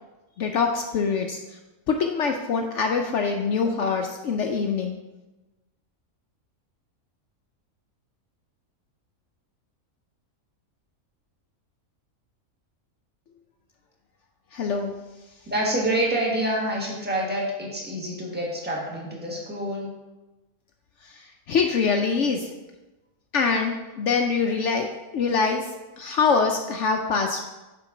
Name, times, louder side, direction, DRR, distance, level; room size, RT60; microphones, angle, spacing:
voice 1, 0.4-1.6 1.9-5.0 14.5-14.9 21.0-22.5 23.3-27.4, left 5 dB, 65° left, 3 dB, 0.8 m, -24 dB
voice 2, 15.5-20.0, right 1 dB, 5° right, -3 dB, 1.4 m, -27 dB
7.1 x 4.5 x 5.8 m, 1.1 s
omnidirectional pair, 1.5 m